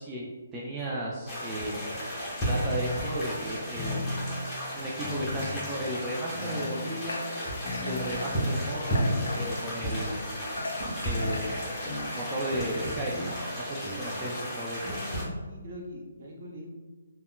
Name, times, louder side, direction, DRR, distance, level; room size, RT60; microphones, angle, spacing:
voice 1, 0.0-2.0 2.4-4.1 4.7-7.3 7.8-10.3 11.0-15.1, right 1 dB, 15° right, -6 dB, 0.3 m, -35 dB
sound 1, 1.3-15.2, equal, 10° left, 1.0 m, -33 dB
sound 2, 2.4-3.1 3.7-4.5 5.0-5.7 6.4-7.0 7.7-8.3 9.0-9.7 11.2-11.4 11.9-12.1 12.5-12.7 13.1-13.4 13.8-14.1, left 3 dB, 35° left, 0.6 m, -37 dB
Water / Water tap faucet, 5.8-13.3, left 2 dB, 75° left, 0.4 m, -40 dB
voice 2, 14.7-16.8, left 1 dB, 45° right, -2 dB, 0.7 m, -42 dB
3.5 x 2.1 x 2.2 m, 1.3 s
figure-of-eight pair, 145°, 0 cm